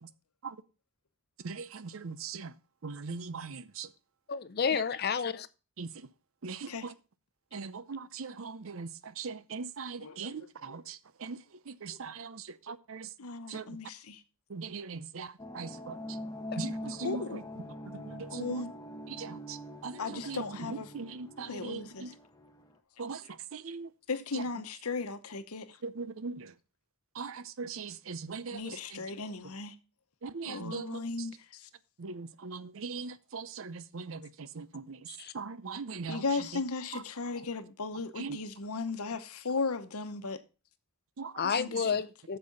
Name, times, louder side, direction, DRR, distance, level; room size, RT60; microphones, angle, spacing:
voice 1, 1.4-2.6 2.8-3.9 4.7-4.8 5.8-6.1 6.4-6.9 7.5-13.1 13.5-13.8 14.5-16.2 16.6-18.7 19.1-22.1 23.0-23.9 24.3-24.5 25.8-26.6 27.1-29.1 29.4-29.5 30.2-31.3 32.0-36.6 36.9-37.0 37.4-37.5 38.2-38.4 41.2-41.5 41.8-42.0, right 4 dB, 60° right, 0.6 m, -41 dB
voice 2, 4.3-5.5 41.4-42.4, left 6 dB, 45° left, 0.6 m, -30 dB
voice 3, 10.0-10.3 11.9-12.0 13.2-14.2 17.0-17.4 18.3-18.7 20.0-20.9 21.5-22.0 24.1-25.8 28.5-29.7 30.4-31.7 36.1-40.4 41.5-41.9, left 4 dB, 80° left, 1.0 m, -36 dB
sound 1, 15.4-22.8, left 1 dB, 15° left, 0.9 m, -43 dB
8.5 x 6.9 x 5.3 m
head